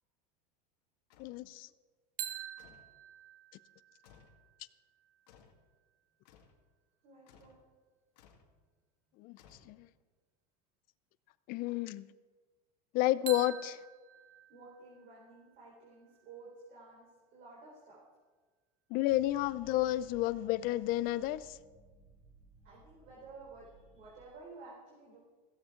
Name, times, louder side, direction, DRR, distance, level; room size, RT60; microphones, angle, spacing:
sound 1, 1.1-1.4 2.6-3.0 4.0-4.4 5.3-5.6 6.3-6.6 7.3-7.6 8.2-8.5 9.4-10.0, left 6 dB, 80° left, 1.9 m, -61 dB
voice 1, 1.2-1.7 9.2-9.4 9.7-9.8 11.5-12.0 12.9-13.8 18.9-21.6, left 15 dB, 45° left, 17 dB, 0.6 m, -31 dB
sound 2, 2.2-6.0 13.3-17.1, right 11 dB, 65° right, 1.7 m, -48 dB
voice 2, 7.0-7.6 14.5-17.0 17.3-18.0 22.6-25.2, right 3 dB, 45° right, -5 dB, 4.3 m, -53 dB
sound 3, 19.1-24.2, right 3 dB, 25° right, 3.8 m, -60 dB
16.0 x 15.5 x 3.8 m, 1.4 s
supercardioid pair, 145°, 20 cm